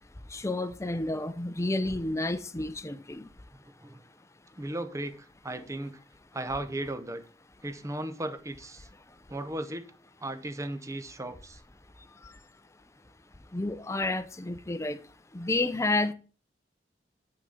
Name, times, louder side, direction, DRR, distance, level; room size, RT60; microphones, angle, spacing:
voice 1, 0.3-3.3 12.0-12.4 13.5-16.1, left 2 dB, 15° left, 0.6 m, -31 dB
voice 2, 3.5-4.0 4.6-6.0 6.3-7.2 7.6-8.9 9.3-9.9 10.2-11.6, right 1 dB, 15° right, 0.7 m, -36 dB
8.2 x 5.9 x 3.8 m
head